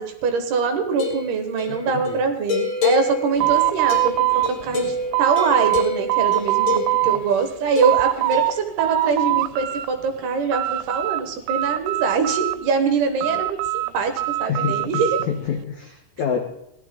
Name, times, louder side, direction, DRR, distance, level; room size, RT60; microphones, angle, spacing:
voice 1, 0.0-4.3 4.6-13.6 13.9-14.1 14.4-15.2, right 5 dB, 70° right, 6 dB, 2.9 m, -23 dB
sound 1, 0.9-7.2 7.8-8.6, left 3 dB, 50° left, 2.3 m, -28 dB
voice 2, 1.7-2.2 3.4-3.5 7.0-7.2 14.5-16.4, left 7 dB, 80° left, 3 dB, 1.7 m, -28 dB
sound 2, 3.4-5.8 6.1-7.2 7.6-8.5 8.8-9.9 10.2-11.2 11.5-12.7 13.2-15.3, right 17 dB, 85° right, 2.9 m, -22 dB
16.5 x 12.0 x 3.7 m, 0.77 s
omnidirectional pair, 5.3 m